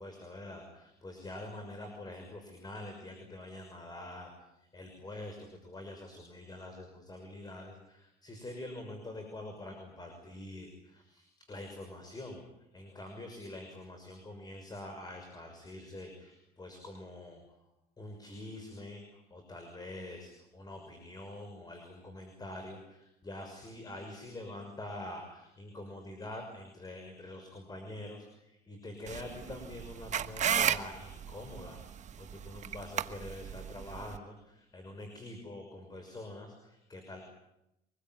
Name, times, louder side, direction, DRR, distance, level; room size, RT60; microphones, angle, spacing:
voice 1, 0.0-17.4 18.0-37.2, left 1 dB, 25° left, 4 dB, 6.2 m, -45 dB
sound 1, 29.1-34.2, right 8 dB, 45° right, 1.5 m, -34 dB
25.0 x 21.5 x 9.3 m, 0.84 s
cardioid pair, 110°, 17 cm